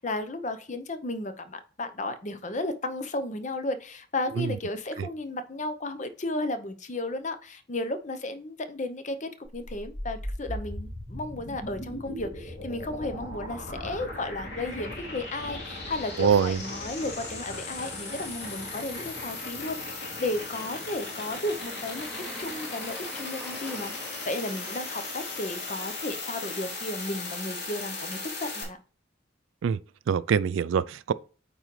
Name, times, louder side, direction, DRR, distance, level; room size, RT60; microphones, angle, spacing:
voice 1, 0.0-28.8, left 2 dB, 35° left, 0.7 m, -34 dB
sound 1, 9.5-28.6, left 2 dB, 55° left, 2.4 m, -37 dB
voice 2, 16.2-16.6 29.6-29.8 30.1-31.1, right 7 dB, 70° right, 0.3 m, -24 dB
sound 2, 20.4-25.8, equal, ahead, 0.8 m, -47 dB
8.8 x 3.8 x 3.1 m
head